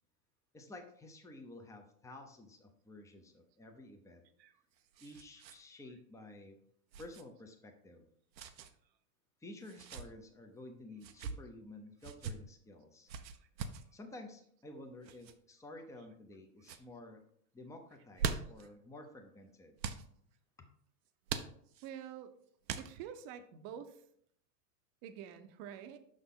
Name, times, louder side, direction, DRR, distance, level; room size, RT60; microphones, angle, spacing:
voice 1, 0.5-4.2 5.0-6.6 7.0-8.1 9.4-13.1 13.9-17.2 17.5-19.8, left 2 dB, 5° left, 4 dB, 0.8 m, -52 dB
sound 1, 4.2-5.6 5.9-6.0 6.9-7.2 8.3-8.7 9.6-10.1 11.0-11.4 12.0-12.4 13.1-13.9 15.0-15.3 16.0-16.4 16.6-16.8 17.9-18.7 19.8-20.1 21.3-21.9 22.7-23.2, right 6 dB, 85° right, 0.8 m, -41 dB
voice 2, 21.8-22.3 22.8-24.0 25.0-26.0, right 9 dB, 45° right, 9 dB, 0.9 m, -47 dB
6.4 x 5.9 x 3.8 m, 0.67 s
hypercardioid pair, 105°, 49 cm